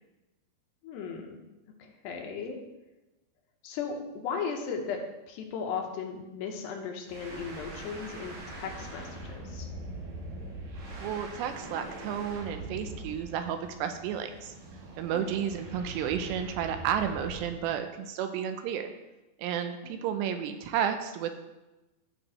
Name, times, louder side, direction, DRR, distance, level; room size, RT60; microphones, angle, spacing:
voice 1, 0.8-1.4 1.8-2.6 3.6-5.0 5.3-9.7 15.1-15.4 19.8-20.0, left 6 dB, 80° left, 2 dB, 3.1 m, -36 dB
sound 1, 7.1-17.6, right 1 dB, 60° right, 2.6 m, -42 dB
voice 2, 11.0-14.5 15.0-18.9 19.4-21.3, right 8 dB, 85° right, 7 dB, 2.7 m, -32 dB
14.5 x 6.4 x 3.1 m, 1.0 s
omnidirectional pair, 5.1 m